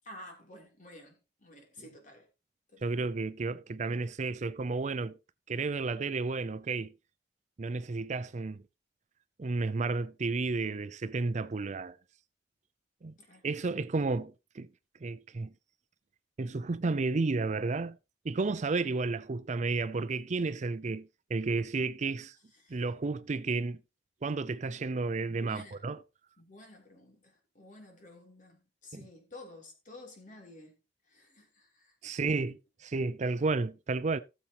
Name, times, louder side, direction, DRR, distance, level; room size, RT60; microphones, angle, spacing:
voice 1, 0.0-2.3 2.7-3.0 13.2-13.5 22.5-22.8 25.3-25.8 26.4-30.8 31.1-32.1, left 1 dB, 45° left, 3.3 m, -52 dB
voice 2, 2.8-5.2 5.5-6.9 7.6-8.6 9.4-12.0 13.0-13.1 13.4-14.7 15.0-15.5 16.4-18.0 18.2-22.3 22.7-23.8 24.2-26.0 28.9-29.0 32.0-34.2, right 3 dB, 40° right, 0.5 m, -32 dB
17.5 x 7.1 x 2.9 m
head